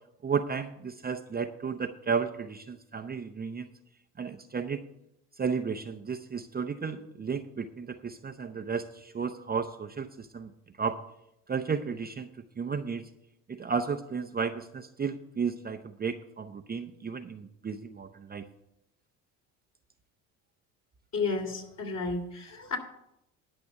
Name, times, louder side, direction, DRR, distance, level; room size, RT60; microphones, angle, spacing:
voice 1, 0.2-3.7 4.2-4.8 5.4-10.5 10.8-11.0 11.5-12.3 12.6-13.1 13.5-18.4, right 5 dB, 25° right, 7 dB, 0.7 m, -33 dB
voice 2, 21.1-22.8, left 4 dB, 40° left, 2 dB, 3.1 m, -32 dB
10.5 x 5.9 x 8.1 m, 0.82 s
hypercardioid pair, 75°, 39 cm